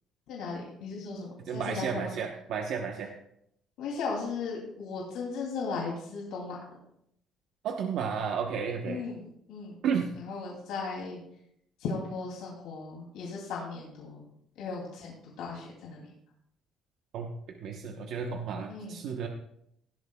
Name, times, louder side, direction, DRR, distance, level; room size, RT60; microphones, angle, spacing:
voice 1, 0.3-2.1 3.8-6.6 8.9-9.8 10.2-11.2 11.8-14.3 14.6-16.1 18.7-19.0, left 4 dB, 90° left, -3 dB, 2.7 m, -37 dB
voice 2, 1.4-3.1 7.6-9.0 9.8-10.1 17.1-19.3, right 6 dB, 65° right, 2 dB, 1.0 m, -32 dB
17.0 x 12.0 x 2.3 m, 0.75 s
cardioid pair, 160°, 0 cm